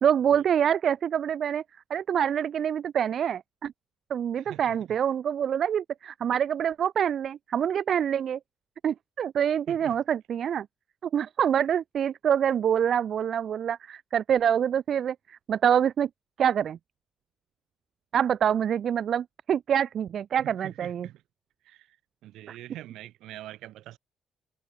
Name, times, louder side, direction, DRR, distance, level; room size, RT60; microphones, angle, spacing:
voice 1, 0.0-1.6 1.9-3.7 4.1-8.4 8.8-10.7 11.1-16.1 16.4-16.8 18.1-21.1 22.5-22.6, right 9 dB, 60° right, 0.6 m, -26 dB
voice 2, 4.4-4.7 9.7-10.0 20.4-21.2 21.6-22.0 22.2-24.0, right 14 dB, 85° right, 6.3 m, -44 dB
cardioid pair, 90°, 0 cm